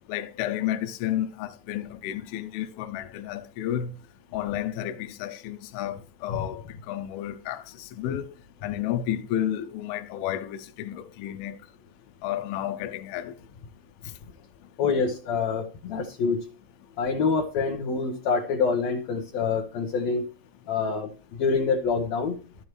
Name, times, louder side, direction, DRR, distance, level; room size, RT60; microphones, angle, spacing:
voice 1, 0.1-3.9 4.3-8.3 8.6-11.6 12.2-13.3, left 11 dB, 85° left, 2.7 m, -31 dB
voice 2, 14.8-16.5 17.0-20.3 20.7-21.1 21.4-22.4, left 5 dB, 65° left, 1.9 m, -26 dB
12.5 x 8.4 x 3.1 m
omnidirectional pair, 4.3 m